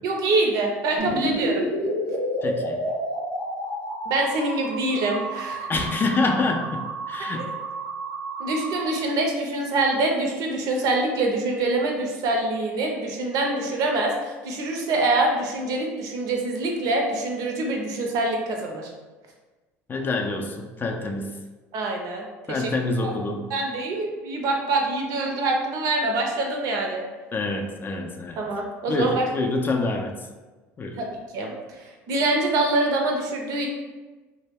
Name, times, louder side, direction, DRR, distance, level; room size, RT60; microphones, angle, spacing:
voice 1, 0.0-1.6 4.1-5.6 7.4-7.5 8.4-18.9 21.7-22.7 23.0-23.1 23.5-27.0 28.4-29.2 31.0-31.1 31.3-31.5 32.1-33.7, right 2 dB, 60° right, 1 dB, 0.5 m, -25 dB
sound 1, 1.0-8.9, right 1 dB, 85° right, 0.9 m, -30 dB
voice 2, 2.4-2.8 5.7-7.4 19.9-21.3 22.5-23.5 27.3-28.4 28.9-30.1 30.8-31.0, left 3 dB, 30° left, 3 dB, 0.4 m, -26 dB
2.2 x 2.0 x 3.4 m, 1.2 s
supercardioid pair, 85°, 7 cm